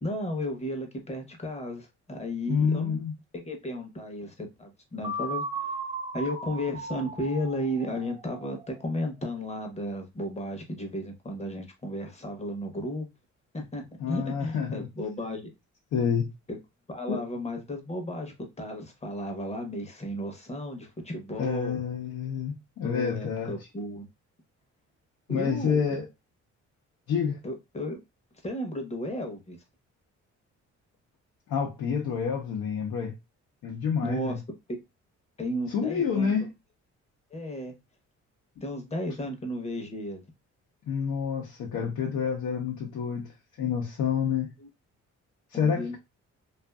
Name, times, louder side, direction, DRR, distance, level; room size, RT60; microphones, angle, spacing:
voice 1, 0.0-3.0 3.4-5.7 6.1-13.1 13.5-15.4 16.5-16.6 16.9-21.8 22.8-24.1 25.3-25.8 27.4-28.0 28.4-29.6 34.0-34.4 35.4-36.3 37.3-37.7 38.6-40.2 44.6-44.7 45.5-46.0, equal, 20° left, 0.8 m, -34 dB
voice 2, 2.5-3.1 14.0-14.9 15.9-16.3 17.1-17.2 21.4-23.5 25.3-26.1 27.1-27.4 31.5-33.1 33.6-34.4 35.7-36.5 40.9-43.3 43.6-44.5 45.5-46.0, left 7 dB, 70° left, 0.8 m, -28 dB
sound 1, 5.0-8.9, right 2 dB, 20° right, 0.6 m, -36 dB
2.5 x 2.5 x 2.2 m
cardioid pair, 90°, 30 cm